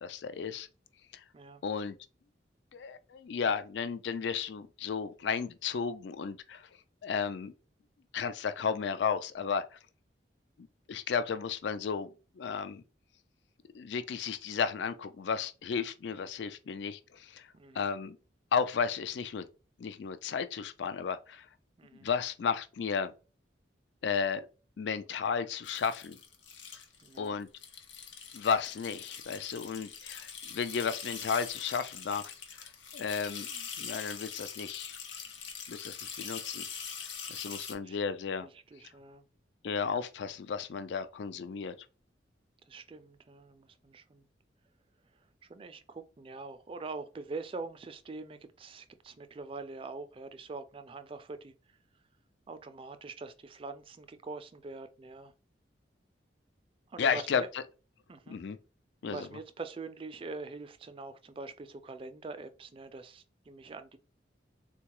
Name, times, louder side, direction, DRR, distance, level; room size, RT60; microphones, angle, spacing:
voice 1, 0.0-0.7 1.1-1.2 1.6-2.0 2.7-6.7 7.0-7.5 8.1-9.8 10.9-12.8 13.7-17.5 17.7-18.2 18.5-19.5 19.8-21.5 22.0-23.1 24.0-24.5 24.8-26.2 27.2-27.5 28.3-35.0 35.7-36.6 37.3-38.5 39.6-41.7 57.0-57.6 58.3-58.6 59.0-59.3, left 6 dB, 70° left, 0.4 m, -33 dB
voice 2, 17.5-17.9 21.8-22.1 27.0-27.4 37.5-38.0 38.7-39.2 42.7-44.2 45.4-51.5 52.5-55.3 56.9-57.5 58.1-58.4 59.1-64.0, right 3 dB, 30° right, 0.3 m, -44 dB
sound 1, 25.6-27.3 27.6-37.7, left 6 dB, 90° left, 0.8 m, -43 dB
3.8 x 2.2 x 2.9 m
head